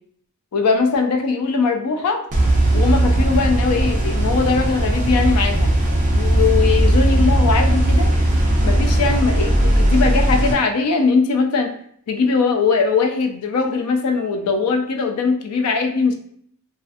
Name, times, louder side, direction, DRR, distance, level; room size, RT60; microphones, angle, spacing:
voice 1, 0.5-2.2 2.7-5.7 6.1-8.1 8.6-11.7 12.1-16.1, left 4 dB, 85° left, 4 dB, 0.4 m, -20 dB
sound 1, 2.3-10.5, right 1 dB, 35° right, 0.5 m, -17 dB
2.4 x 2.3 x 2.5 m, 0.64 s
head